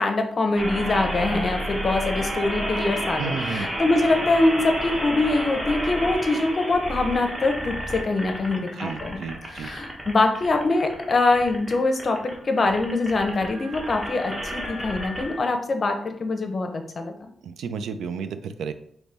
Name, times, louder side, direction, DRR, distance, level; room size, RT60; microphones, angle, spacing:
voice 1, 0.0-9.2 9.5-16.7 17.0-17.3, left 2 dB, 40° left, 5 dB, 0.6 m, -23 dB
sound 1, 0.6-15.4, equal, 15° right, 1.0 m, -31 dB
voice 2, 3.2-3.7 8.6-9.7 17.4-18.7, right 6 dB, 90° right, 10 dB, 0.4 m, -32 dB
5.3 x 3.0 x 3.4 m, 0.66 s
wide cardioid pair, 125°, 0 cm